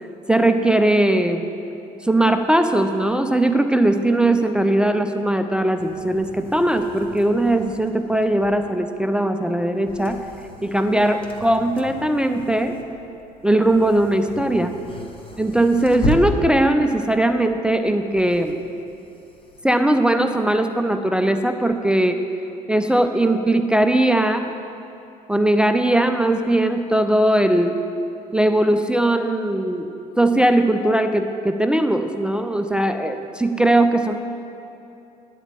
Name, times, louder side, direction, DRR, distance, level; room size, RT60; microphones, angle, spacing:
voice 1, 0.3-1.5 2.0-10.2 10.6-12.8 13.4-14.7 15.4-18.6 19.6-22.2 22.7-24.5 25.3-27.8 28.3-29.9 30.2-34.1, right 1 dB, 5° right, 7 dB, 0.4 m, -19 dB
sound 1, 5.8-19.6, left 1 dB, 25° left, 1.1 m, -35 dB
9.8 x 4.5 x 7.3 m, 2.7 s
figure-of-eight pair, 55°, 21 cm